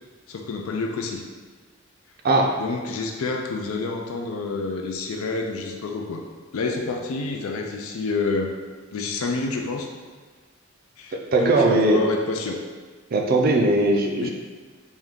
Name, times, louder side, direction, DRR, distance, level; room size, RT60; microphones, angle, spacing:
voice 1, 0.3-1.2 2.6-6.2 6.5-8.5 8.9-9.9 11.0-12.6 14.2-14.3, left 3 dB, 85° left, 2 dB, 0.4 m, -28 dB
voice 2, 11.1-12.0 13.1-14.3, right 2 dB, 45° right, 2 dB, 0.4 m, -19 dB
3.5 x 2.6 x 3.6 m, 1.5 s
head